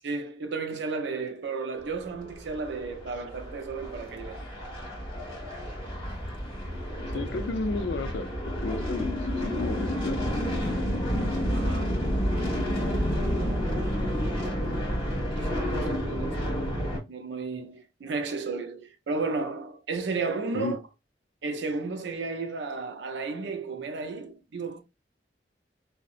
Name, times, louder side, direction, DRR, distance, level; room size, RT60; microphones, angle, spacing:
voice 1, 0.0-4.4 7.1-7.3 11.5-12.1 13.4-14.1 14.4-14.8 15.1-20.8 21.4-24.8, right 4 dB, 75° right, 0.5 m, -34 dB
sound 1, 2.2-17.0, equal, 25° left, 1.2 m, -30 dB
voice 2, 7.1-10.6 20.5-20.8, left 3 dB, 80° left, 0.4 m, -33 dB
2.7 x 2.0 x 2.4 m
head